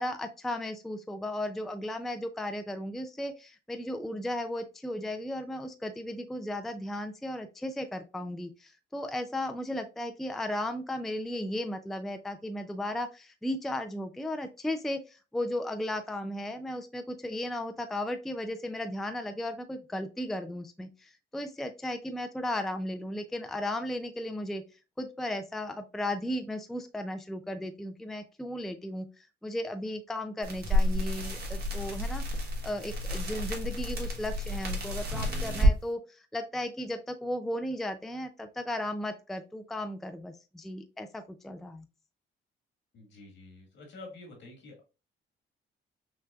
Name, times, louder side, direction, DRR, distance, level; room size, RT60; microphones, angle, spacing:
voice 1, 0.0-24.6 25.0-41.9, left 1 dB, ahead, 7 dB, 0.4 m, -35 dB
sound 1, 30.4-35.8, equal, 55° right, 1.3 m, -29 dB
voice 2, 42.9-44.8, left 2 dB, 70° left, 2 dB, 1.8 m, -48 dB
5.9 x 2.2 x 2.3 m, 0.30 s
cardioid pair, 90°, 20 cm